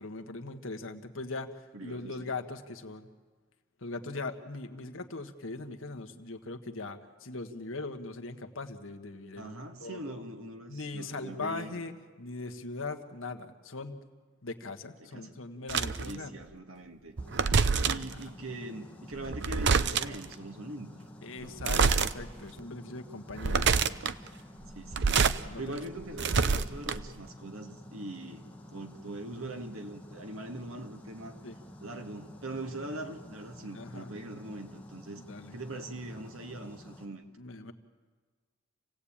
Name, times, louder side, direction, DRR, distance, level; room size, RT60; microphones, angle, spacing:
voice 1, 0.0-3.1 3.8-9.5 9.8-10.0 10.7-11.9 12.2-14.0 14.4-16.3 21.2-23.7 25.3-25.8 31.4-31.5 33.7-34.1 35.3-35.6 37.4-37.7, left 3 dB, 70° left, 6 dB, 1.6 m, -40 dB
voice 2, 1.7-2.4 9.4-11.8 15.0-15.3 16.0-17.2 17.5-21.6 24.8-28.4 28.7-31.4 31.8-35.2 35.5-37.2, right 2 dB, 80° right, 5 dB, 2.1 m, -42 dB
sound 1, 15.7-16.1 17.2-18.1 19.2-20.2 21.6-22.1 22.6-22.7 23.3-24.1 24.8-25.4 25.8-27.2, right 5 dB, 55° right, 0.7 m, -26 dB
sound 2, 17.2-37.1, left 1 dB, 5° left, 2.0 m, -50 dB
28.0 x 17.0 x 8.8 m, 1.4 s
head